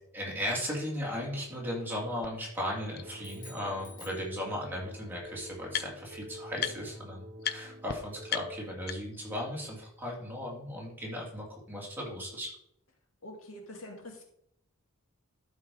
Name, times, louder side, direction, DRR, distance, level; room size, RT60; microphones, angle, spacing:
voice 1, 0.1-12.5, equal, 10° right, -3 dB, 2.8 m, -36 dB
sound 1, 2.2-2.3 3.0-3.1 4.3-4.4 4.7-6.2 6.6-7.0 7.4-7.6 7.9-8.0 8.3-9.3, left 9 dB, 45° left, 0.6 m, -36 dB
sound 2, 2.9-9.0, equal, 50° right, 1.3 m, -48 dB
sound 3, 3.2-5.0, left 2 dB, 20° left, 4.3 m, -53 dB
voice 2, 13.2-14.2, left 1 dB, 70° left, 1 dB, 2.3 m, -45 dB
12.0 x 5.4 x 4.8 m, 0.75 s
head